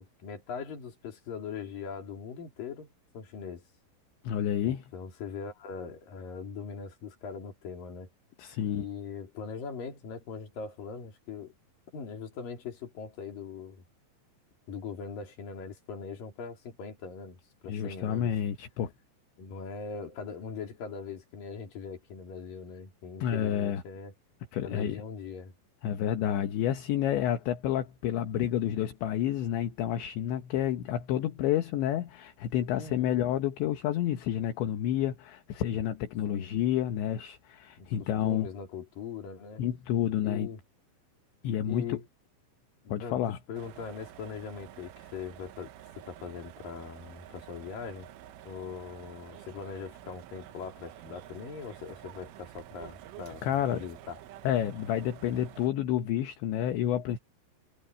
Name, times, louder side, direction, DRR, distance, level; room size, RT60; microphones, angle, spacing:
voice 1, 0.0-3.6 4.6-8.1 8.6-11.5 11.9-13.8 14.7-17.4 17.6-18.3 19.4-24.1 24.6-25.5 32.7-33.3 36.3-36.5 37.8-39.6 40.2-40.6 41.6-42.1 42.8-45.7 46.0-48.1 48.4-54.2, left 5 dB, 45° left, 4.9 m, -41 dB
voice 2, 4.2-4.8 8.4-8.9 17.7-18.9 23.2-23.8 24.5-25.0 25.8-38.5 39.6-40.5 41.4-42.0 42.9-43.4 53.4-53.8 54.5-57.2, left 10 dB, 70° left, 3.6 m, -29 dB
sound 1, 43.5-55.7, right 12 dB, 80° right, 3.7 m, -49 dB
omnidirectional pair, 5.6 m